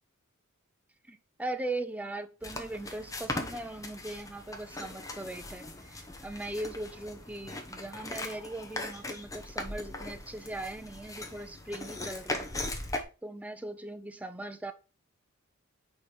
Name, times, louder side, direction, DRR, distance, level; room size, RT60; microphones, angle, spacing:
voice 1, 1.1-12.5 13.2-14.7, right 2 dB, 5° right, 0.5 m, -39 dB
sound 1, 2.4-13.0, left 2 dB, 15° left, 1.0 m, -39 dB
5.0 x 4.5 x 5.0 m
head